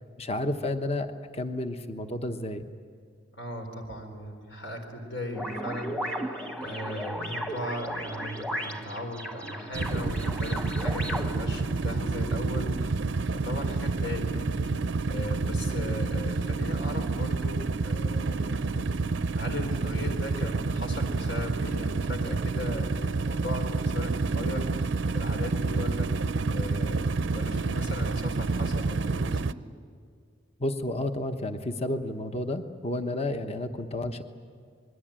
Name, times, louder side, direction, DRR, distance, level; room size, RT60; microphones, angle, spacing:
voice 1, 0.2-2.7 30.6-34.2, left 1 dB, 35° left, 7 dB, 1.1 m, -31 dB
voice 2, 3.3-19.0 19.3-29.5, left 1 dB, 75° left, 4 dB, 4.4 m, -37 dB
sound 1, 5.3-12.6, equal, 5° left, 1.3 m, -36 dB
sound 2, 9.7-29.5, right 3 dB, 75° right, 0.6 m, -29 dB
27.5 x 21.5 x 9.0 m, 2.1 s
head